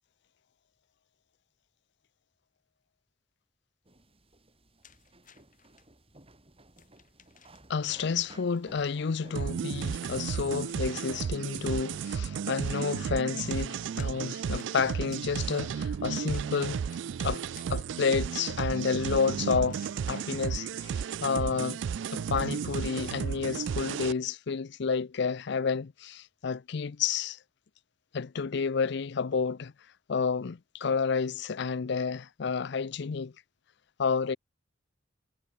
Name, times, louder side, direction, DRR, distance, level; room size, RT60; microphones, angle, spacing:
sound 1, 3.8-9.9, right 2 dB, 30° right, 7.4 m, -56 dB
sound 2, 4.8-5.9 6.7-7.9 9.7-11.9 13.3-18.0 19.7-20.1 22.2-22.7, left 8 dB, 45° left, 5.5 m, -59 dB
voice 1, 7.7-16.8 17.2-17.4 17.7-19.8 20.1-20.9 21.2-21.8 22.1-27.4 28.1-29.7 30.1-33.3 34.0-34.4, left 5 dB, 65° left, 0.5 m, -30 dB
sound 3, 9.3-24.1, right 7 dB, 70° right, 0.3 m, -33 dB
head